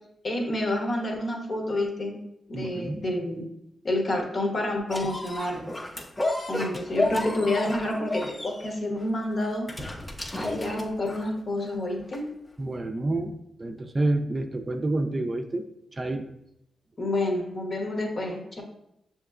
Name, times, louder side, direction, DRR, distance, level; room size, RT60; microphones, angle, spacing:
voice 1, 0.2-2.2 2.5-3.4 3.8-5.7 6.5-9.7 10.4-12.2 17.0-18.6, left 1 dB, 50° left, 2 dB, 1.0 m, -28 dB
voice 2, 2.5-3.0 12.6-15.6 16.0-16.3, right 2 dB, 35° right, 5 dB, 0.4 m, -28 dB
sound 1, 4.9-11.4 12.1-12.2, left 2 dB, 25° left, 0.6 m, -32 dB
6.5 x 2.9 x 2.4 m, 0.80 s
cardioid pair, 50°, 0 cm